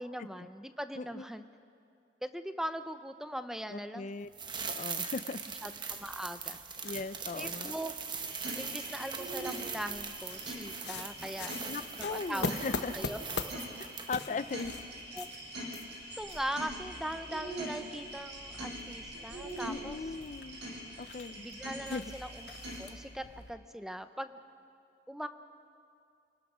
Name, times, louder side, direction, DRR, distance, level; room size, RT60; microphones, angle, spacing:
voice 1, 0.0-1.5 2.2-4.1 5.6-6.6 7.4-7.9 8.5-11.5 12.0-12.6 12.9-13.2 13.5-13.6 15.1-15.3 16.2-20.0 21.3-22.5 22.8-24.4 25.1-25.3, equal, 5° right, 10 dB, 0.7 m, -40 dB
voice 2, 3.7-4.3 4.7-5.4 6.8-7.7 11.7-12.9 14.1-14.8 19.7-20.6 21.0-21.5 21.9-22.0, left 4 dB, 45° left, 13 dB, 0.5 m, -38 dB
sound 1, 4.3-14.3 14.6-14.7, right 6 dB, 25° right, 1.1 m, -41 dB
sound 2, 5.9-23.5, left 3 dB, 75° left, 1.2 m, -45 dB
sound 3, 8.2-22.8, right 1 dB, 75° right, 6.9 m, -44 dB
29.0 x 19.5 x 6.1 m, 2.4 s
head